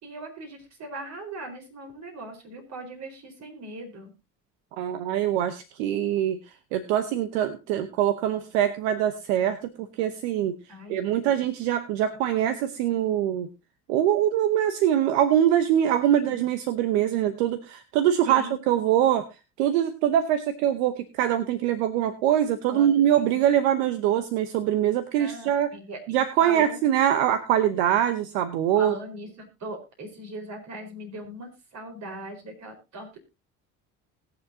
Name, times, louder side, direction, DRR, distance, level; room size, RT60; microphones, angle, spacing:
voice 1, 0.0-4.1 10.7-11.4 16.1-16.4 18.3-18.6 22.7-22.9 25.2-26.8 28.7-33.2, right 1 dB, 55° right, 4 dB, 4.6 m, -39 dB
voice 2, 4.8-6.4 6.7-9.7 10.0-10.6 10.9-13.5 13.9-19.3 19.6-25.7 26.1-28.9, right 10 dB, 90° right, 10 dB, 0.9 m, -23 dB
20.5 x 7.2 x 2.8 m, 0.27 s
supercardioid pair, 75°, 32 cm